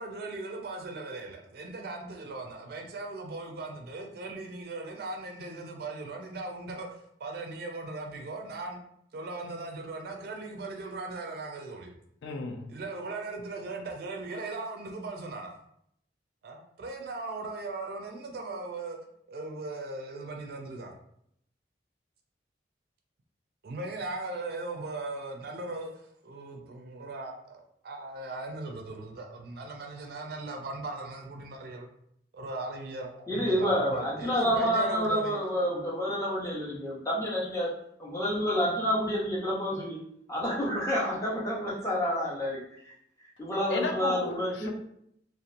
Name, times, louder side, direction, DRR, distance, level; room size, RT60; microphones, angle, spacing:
voice 1, 0.0-8.8 9.1-11.9 12.7-15.6 16.4-19.0 19.3-20.9 23.6-25.9 26.2-31.9 32.3-35.4, right 2 dB, 55° right, 0.4 m, -38 dB
voice 2, 12.2-12.7 43.7-44.7, left 4 dB, 75° left, 0.4 m, -33 dB
voice 3, 33.3-37.7 38.0-40.0 40.3-42.6 43.4-44.7, equal, 15° left, 0.6 m, -28 dB
2.8 x 2.0 x 2.4 m
head